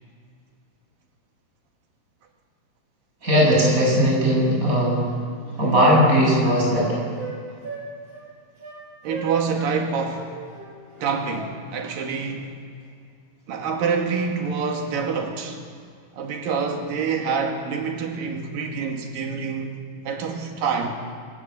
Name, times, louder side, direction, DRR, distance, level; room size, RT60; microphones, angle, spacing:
voice 1, 3.2-5.1 5.6-7.0, equal, 25° right, 7.8 m, -18 dB
Wind instrument woodwind instrument, 5.1-5.3 5.6-7.4 7.6-7.8 8.1-8.3 8.6-8.8 9.1-9.7 10.0-11.9, right 3 dB, 45° right, 6.5 m, -37 dB
voice 2, 9.0-10.3 11.0-12.5 13.5-15.6 16.2-19.8 20.1-20.9, right 5 dB, 85° right, 3.6 m, -26 dB
26.0 x 13.5 x 8.1 m
omnidirectional pair, 3.8 m